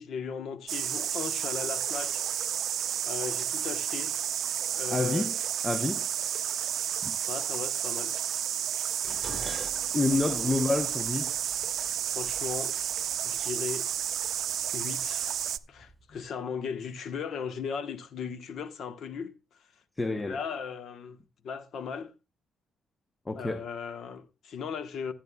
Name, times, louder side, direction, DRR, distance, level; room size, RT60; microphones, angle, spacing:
voice 1, 0.0-2.2 3.1-4.2 4.7-5.3 7.3-8.1 10.3-10.5 12.1-12.8 13.2-13.9 14.7-15.3 15.7-19.4 20.3-21.2 21.4-22.1 23.3-25.1, left 6 dB, 65° left, 1.1 m, -37 dB
sound 1, 0.7-15.6, right 10 dB, 70° right, 0.5 m, -31 dB
voice 2, 4.9-5.3 5.6-6.0 7.0-7.2 9.9-11.4 20.0-20.4 23.3-23.6, left 2 dB, 20° left, 0.8 m, -28 dB
Dishes pots and pans, 9.0-13.4 14.3-14.7 15.1-15.9 16.2-16.3, right 1 dB, ahead, 6.6 m, -45 dB
15.0 x 9.2 x 2.3 m
cardioid pair, 90°, 0 cm